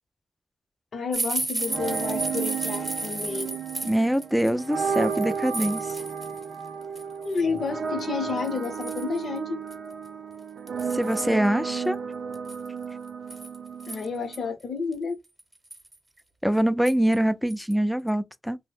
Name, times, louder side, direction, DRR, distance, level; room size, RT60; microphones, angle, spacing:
voice 1, 0.9-3.6 7.2-9.6 13.9-15.1, left 5 dB, 70° left, 0.7 m, -30 dB
sound 1, 1.1-6.5 6.8-7.4 8.0-8.1 8.4-9.2 9.7-9.8 10.1-10.2 10.7-11.3 12.3-14.4 14.9-15.0 15.4-16.0 16.9-17.2 17.5-17.7 18.1-18.2, right 2 dB, 30° right, 0.8 m, -34 dB
sound 2, 1.6-14.5, right 6 dB, 85° right, 0.4 m, -33 dB
voice 2, 3.8-6.0 10.9-12.0 16.4-18.6, equal, ahead, 0.4 m, -24 dB
2.7 x 2.0 x 3.3 m
cardioid pair, 75°, 0 cm